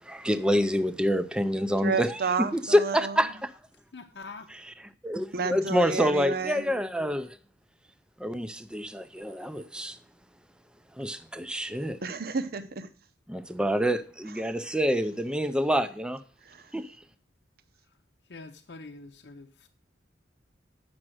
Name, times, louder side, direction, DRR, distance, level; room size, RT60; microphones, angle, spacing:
voice 1, 0.0-2.2 2.5-3.5 5.0-7.4 8.2-10.0 11.0-12.0 13.3-16.2 16.7-17.0, equal, 5° right, 0.4 m, -27 dB
voice 2, 1.8-3.2 5.3-6.7 12.0-12.9 16.4-16.7, right 4 dB, 55° right, 0.7 m, -31 dB
voice 3, 3.9-4.5 18.3-19.7, left 3 dB, 70° left, 0.7 m, -44 dB
8.8 x 6.1 x 6.1 m
head